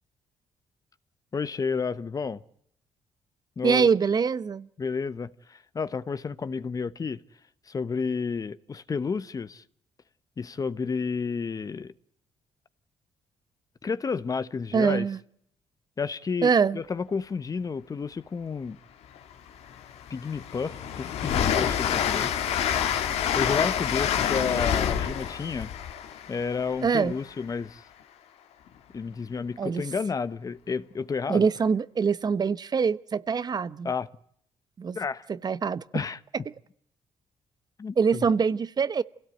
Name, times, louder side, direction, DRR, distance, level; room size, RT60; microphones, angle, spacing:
voice 1, 1.3-2.4 3.6-3.9 4.8-7.2 7.7-9.6 10.4-11.9 13.8-15.1 16.0-18.8 20.1-22.3 23.3-25.7 26.3-27.8 28.9-31.5 33.8-34.1 34.9-35.3 35.9-36.2 37.8-38.2, left 5 dB, 35° left, 1.0 m, -31 dB
voice 2, 3.6-4.7 14.7-15.2 16.4-16.8 26.8-27.1 29.6-29.8 31.3-33.9 34.8-35.0 35.3-36.0 38.0-39.0, right 6 dB, 40° right, 0.9 m, -24 dB
Train, 19.2-19.3 19.7-27.4, left 9 dB, 85° left, 2.0 m, -28 dB
27.5 x 17.0 x 9.1 m
cardioid pair, 90°, 10 cm